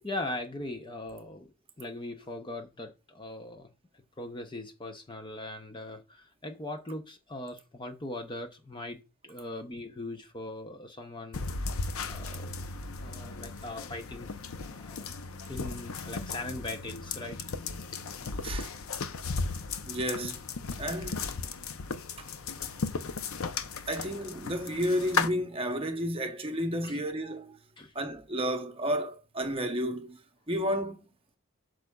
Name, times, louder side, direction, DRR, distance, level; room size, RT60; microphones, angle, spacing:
voice 1, 0.0-3.7 4.2-9.0 9.2-11.4 12.1-12.5 13.0-14.3 14.6-15.2 15.5-17.6 20.9-21.0 22.7-22.9 26.8-27.0 27.8-27.9, left 2 dB, 20° left, 0.6 m, -40 dB
sound 1, 11.3-25.3, left 4 dB, 75° left, 0.6 m, -36 dB
voice 2, 19.9-20.4 20.8-21.2 22.2-22.3 23.9-27.6 27.9-30.2 30.5-31.1, equal, 25° right, 0.8 m, -32 dB
8.1 x 6.3 x 2.3 m
head